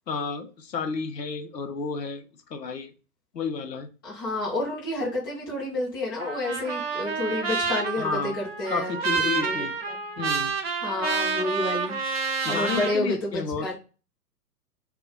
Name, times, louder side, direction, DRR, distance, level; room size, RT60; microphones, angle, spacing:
voice 1, 0.1-2.2 2.5-2.9 3.3-3.9 8.0-8.4 8.7-9.7 10.2-10.5 12.4-13.7, left 5 dB, 90° left, 0.6 m, -31 dB
voice 2, 4.0-9.9 10.8-12.0 12.5-13.3 13.6-13.7, left 2 dB, 15° left, 0.4 m, -30 dB
Trumpet, 6.2-13.0, right 5 dB, 40° right, 0.4 m, -29 dB
2.2 x 2.1 x 3.7 m
figure-of-eight pair, 120°, 48 cm